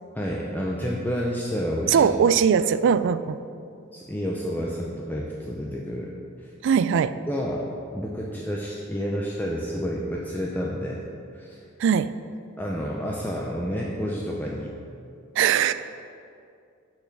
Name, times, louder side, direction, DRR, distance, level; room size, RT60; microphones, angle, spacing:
voice 1, 0.1-2.1 3.9-6.1 6.4-6.5 7.3-7.7 7.9-11.0 11.3-11.6 12.6-14.7, equal, 10° left, -2 dB, 0.5 m, -29 dB
voice 2, 1.9-3.4 6.6-7.1 11.8-12.1 15.4-15.7, right 7 dB, 60° right, 13 dB, 0.3 m, -20 dB
6.9 x 5.7 x 6.1 m, 2.5 s
head